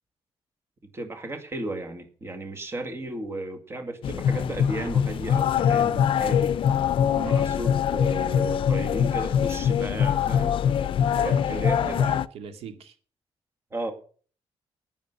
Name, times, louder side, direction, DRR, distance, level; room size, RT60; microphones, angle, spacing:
voice 1, 0.9-6.5 7.2-10.5 11.2-12.0 13.7-13.9, right 2 dB, 25° right, 5 dB, 2.1 m, -34 dB
sound 1, 4.0-12.3, left 8 dB, 60° left, 0.5 m, -23 dB
voice 2, 11.1-12.9, right 7 dB, 80° right, 7 dB, 2.3 m, -38 dB
10.5 x 9.6 x 6.7 m, 0.42 s
wide cardioid pair, 155°, 10 cm